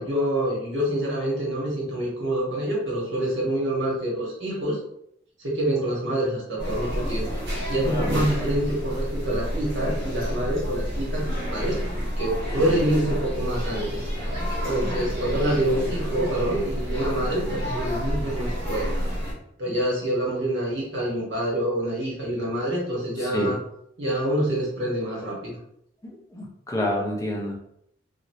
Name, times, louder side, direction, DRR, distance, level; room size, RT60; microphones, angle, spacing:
voice 1, 0.0-4.8 5.4-7.3 7.7-11.9 12.2-14.0 14.7-18.9 19.6-23.6 24.0-25.6, right 1 dB, 80° right, -4 dB, 1.3 m, -26 dB
sound 1, 6.6-19.3, equal, 65° right, 1.4 m, -29 dB
voice 2, 7.8-8.3 12.6-12.7 19.7-19.8 23.2-23.6 26.0-27.6, left 1 dB, 15° left, -2 dB, 0.5 m, -29 dB
3.1 x 2.5 x 2.7 m, 0.72 s
head